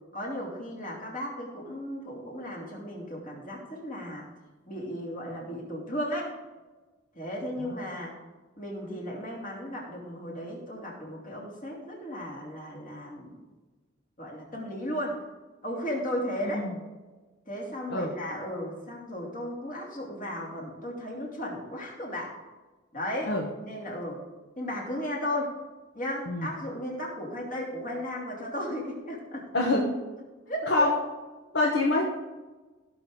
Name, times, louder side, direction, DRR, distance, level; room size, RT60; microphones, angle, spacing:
voice 1, 0.1-4.3 4.7-6.3 7.1-8.1 8.6-13.4 14.2-15.2 15.6-16.7 17.5-22.3 22.9-23.3 23.6-24.2 24.6-25.5 25.9-29.4 30.5-30.9, equal, 45° left, -2 dB, 2.9 m, -35 dB
voice 2, 31.5-32.0, left 2 dB, 60° left, -1 dB, 1.3 m, -25 dB
16.5 x 6.3 x 3.9 m, 1.2 s
head